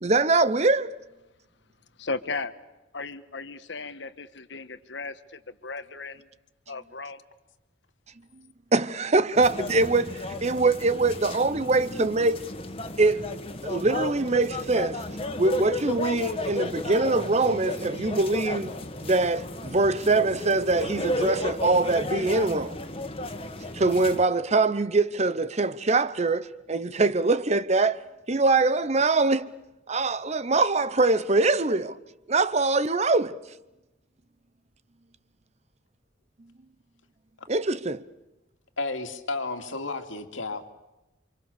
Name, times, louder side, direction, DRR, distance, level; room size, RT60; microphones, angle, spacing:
voice 1, 0.0-1.0 8.7-12.4 13.0-13.3 13.6-15.0 15.4-18.7 19.0-22.8 23.7-29.5 29.9-32.0 32.3-33.4 37.5-38.0, right 3 dB, 35° right, 0.8 m, -23 dB
voice 2, 2.0-2.5 2.9-6.2 6.7-7.2, left 3 dB, 65° left, 1.4 m, -36 dB
sound 1, 9.4-24.2, left 1 dB, 30° left, 2.0 m, -33 dB
voice 3, 38.8-40.7, left 3 dB, 85° left, 2.6 m, -32 dB
29.0 x 26.5 x 6.9 m
head